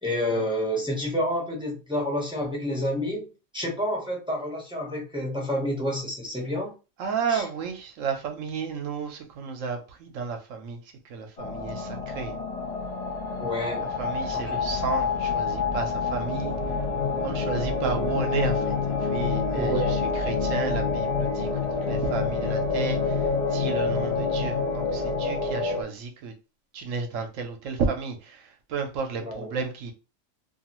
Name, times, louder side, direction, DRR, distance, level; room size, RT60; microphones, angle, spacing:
voice 1, 0.0-3.3 3.5-6.7 7.3-7.4 13.4-13.9 14.3-14.6 19.5-20.1 29.2-29.5, equal, 5° right, 0.6 m, -29 dB
voice 2, 7.0-10.8 11.0-12.4 13.8-16.6 17.2-21.5 21.9-26.3 26.7-29.9, right 5 dB, 75° right, 1.0 m, -32 dB
sound 1, 11.4-25.8, left 4 dB, 60° left, 0.4 m, -27 dB
2.6 x 2.4 x 2.9 m
omnidirectional pair, 1.4 m